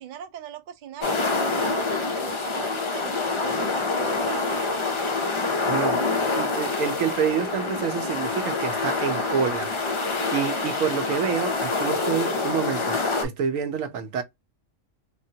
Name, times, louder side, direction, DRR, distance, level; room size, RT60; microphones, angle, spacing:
voice 1, 0.0-3.1 3.4-4.7, right 10 dB, 65° right, 0.4 m, -39 dB
sound 1, 1.0-13.2, left 3 dB, 50° left, 0.3 m, -26 dB
voice 2, 5.7-9.7 10.3-14.2, right 7 dB, 80° right, 1.0 m, -28 dB
3.5 x 2.0 x 2.7 m
omnidirectional pair, 1.4 m